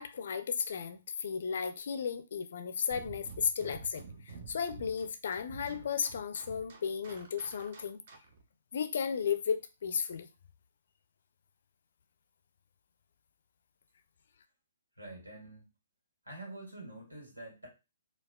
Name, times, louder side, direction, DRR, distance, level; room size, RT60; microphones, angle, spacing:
voice 1, 0.0-8.0 8.7-10.3, left 7 dB, 50° left, 0.4 m, -34 dB
sound 1, 2.9-8.4, right 4 dB, 45° right, 0.7 m, -49 dB
voice 2, 15.0-15.7 16.2-17.7, right 2 dB, 75° right, 1.7 m, -46 dB
4.7 x 2.3 x 2.3 m
figure-of-eight pair, 125°, 0 cm